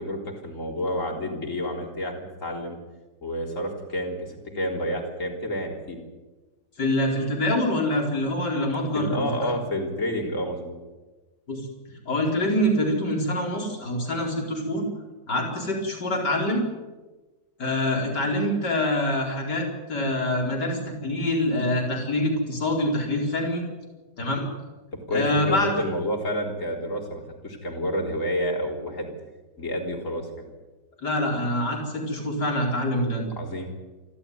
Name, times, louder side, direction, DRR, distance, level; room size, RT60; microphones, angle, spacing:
voice 1, 0.0-2.8 3.2-6.0 8.9-10.8 24.9-29.1 29.6-30.3 33.4-33.7, equal, 50° left, 1 dB, 4.2 m, -29 dB
voice 2, 6.8-9.5 11.5-11.7 12.1-14.9 15.3-16.6 17.6-23.6 24.2-24.5 25.1-25.7 31.0-33.2, left 1 dB, 85° left, 0 dB, 5.2 m, -25 dB
28.0 x 13.0 x 9.5 m, 1.2 s
omnidirectional pair, 1.8 m